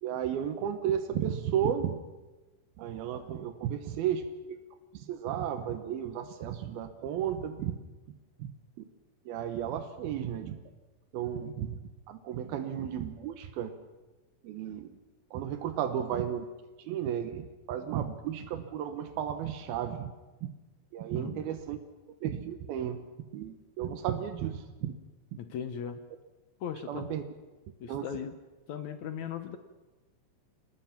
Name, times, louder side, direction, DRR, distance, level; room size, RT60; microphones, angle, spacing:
voice 1, 0.0-2.0 2.8-4.6 4.9-7.8 8.4-8.5 9.3-10.6 11.1-11.8 12.1-13.7 14.4-15.0 15.3-16.5 16.8-20.1 20.4-20.5 20.9-21.8 22.2-23.1 23.3-24.9 26.9-27.2 27.9-28.1, right 9 dB, 85° right, 8 dB, 3.0 m, -33 dB
voice 2, 21.1-21.5 25.4-26.0 26.6-27.1 27.8-28.4 28.7-29.6, left 8 dB, 65° left, 9 dB, 2.0 m, -38 dB
28.0 x 19.0 x 5.9 m, 1.2 s
omnidirectional pair, 4.2 m